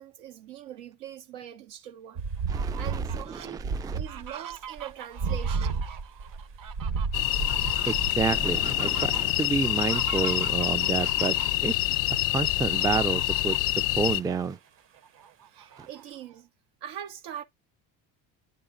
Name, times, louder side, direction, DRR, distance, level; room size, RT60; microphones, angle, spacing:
voice 1, 0.0-2.2 2.5-5.8 15.5-16.5 16.8-17.4, right 10 dB, 85° right, 1.3 m, -42 dB
sound 1, 2.2-9.0 12.5-13.1, right 4 dB, 60° right, 1.4 m, -32 dB
Fowl, 2.4-3.5 4.0-11.7 12.7-13.8 14.2-14.3 14.7-16.4, right 9 dB, 40° right, 0.9 m, -43 dB
voice 2, 2.5-4.0 7.9-11.4 11.6-11.7 12.3-13.6 13.9-14.6 15.8-15.9, right 5 dB, 10° right, 0.4 m, -29 dB
sound 2, 7.1-14.2, left 20 dB, 75° left, 0.6 m, -26 dB
9.8 x 4.0 x 2.5 m
supercardioid pair, 75°, 49 cm